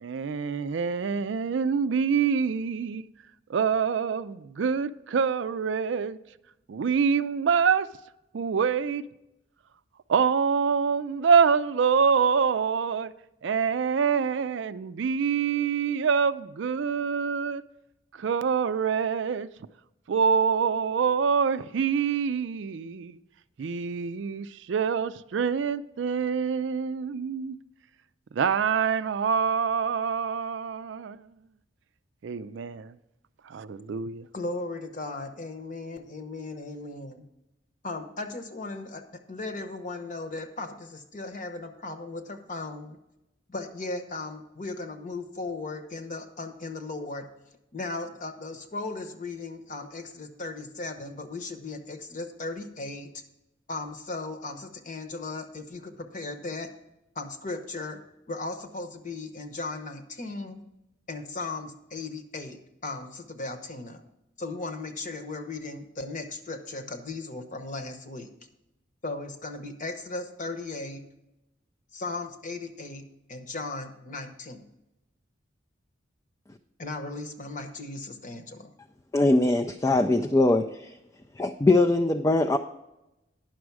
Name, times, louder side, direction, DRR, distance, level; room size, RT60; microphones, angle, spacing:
voice 1, 0.0-3.1 3.5-6.2 6.7-7.9 8.3-9.0 10.1-13.1 13.4-17.6 18.1-19.5 20.1-23.2 23.6-27.6 28.3-31.3 32.2-33.0 33.4-34.3, right 6 dB, 65° right, 0.4 m, -26 dB
voice 2, 34.3-37.2 37.8-43.0 43.5-47.3 47.7-53.2 53.7-56.7 57.1-58.0 58.3-60.6 61.1-64.0 64.4-68.3 69.0-71.0 71.9-74.6 76.8-78.7, left 3 dB, 40° left, 1.0 m, -37 dB
voice 3, 79.1-80.9 81.4-82.6, left 2 dB, 15° left, 0.4 m, -22 dB
10.5 x 6.2 x 4.7 m
head